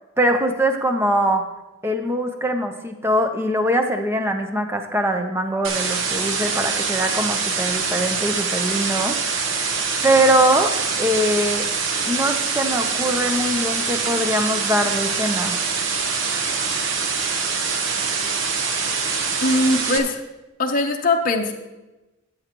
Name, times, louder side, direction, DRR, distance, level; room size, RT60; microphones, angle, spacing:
voice 1, 0.2-1.4 1.8-9.1 10.0-10.7 11.0-11.6 12.1-15.6, right 1 dB, 10° right, 5 dB, 0.7 m, -22 dB
sound 1, 5.6-20.0, right 5 dB, 70° right, 1.0 m, -24 dB
voice 2, 19.4-20.2 20.6-21.5, left 2 dB, 40° left, 2 dB, 0.8 m, -20 dB
13.0 x 8.7 x 3.0 m, 1.0 s
head